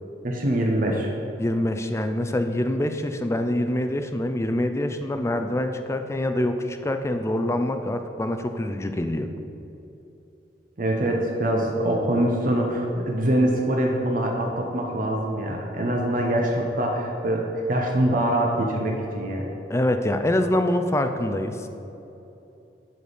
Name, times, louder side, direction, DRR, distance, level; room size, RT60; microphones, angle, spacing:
voice 1, 0.2-1.1 10.8-19.5, right 1 dB, 50° right, 0 dB, 0.8 m, -24 dB
voice 2, 1.4-9.3 19.7-21.7, left 1 dB, 15° left, 7 dB, 0.5 m, -25 dB
12.0 x 4.2 x 5.1 m, 3.0 s
head